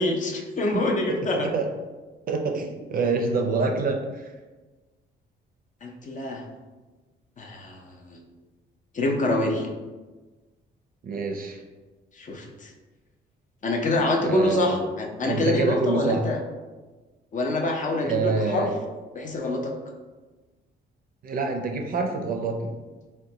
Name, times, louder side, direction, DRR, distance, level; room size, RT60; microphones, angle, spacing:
voice 1, 0.0-1.5 5.8-6.4 7.4-8.2 8.9-9.7 12.2-12.7 13.6-16.4 17.3-18.7 19.1-19.7, left 2 dB, 40° left, 1 dB, 0.5 m, -26 dB
voice 2, 2.3-4.3 11.0-11.6 14.2-14.8 15.2-16.2 18.0-18.7 21.2-22.7, right 4 dB, 45° right, 3 dB, 0.5 m, -26 dB
3.8 x 2.2 x 2.7 m, 1.3 s
cardioid pair, 90°, 20 cm